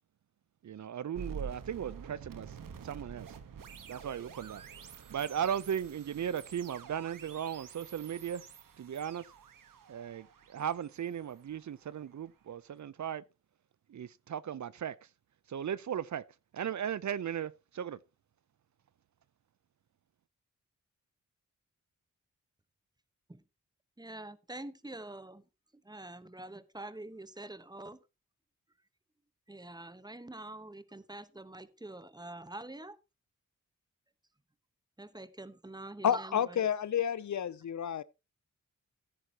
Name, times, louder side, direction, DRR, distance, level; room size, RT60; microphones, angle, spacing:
voice 1, 0.6-2.6 2.8-3.3 3.9-4.6 5.1-8.4 8.8-9.2 9.9-13.2 13.9-15.0 15.5-16.2 16.5-18.0, right 9 dB, 60° right, 0.6 m, -37 dB
sound 1, 1.2-12.2, right 6 dB, 85° right, 1.3 m, -48 dB
voice 2, 24.0-25.4 25.8-28.0 29.5-33.0 35.0-36.7, right 2 dB, 10° right, 1.0 m, -45 dB
voice 3, 36.0-38.0, left 9 dB, 60° left, 0.6 m, -30 dB
13.5 x 9.9 x 2.9 m
cardioid pair, 65°, 33 cm